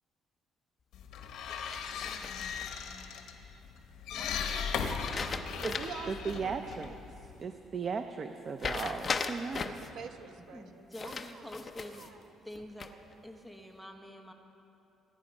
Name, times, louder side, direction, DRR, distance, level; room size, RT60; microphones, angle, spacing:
sound 1, 0.9-7.4, left 6 dB, 75° left, 1.2 m, -38 dB
sound 2, 1.7-2.6 4.8-6.1 6.5-6.6 8.6-9.9 10.9-12.1 12.5-13.1, left 4 dB, 25° left, 0.6 m, -37 dB
voice 1, 4.0-6.9 9.6-12.4, right 5 dB, 65° right, 4 dB, 1.1 m, -49 dB
voice 2, 6.3-7.0 7.4-9.7, right 5 dB, 30° right, 7 dB, 0.5 m, -36 dB
voice 3, 10.5-12.9 13.2-14.3, left 1 dB, ahead, 3 dB, 0.9 m, -47 dB
24.5 x 9.8 x 5.3 m, 2.9 s
cardioid pair, 175°, 0 cm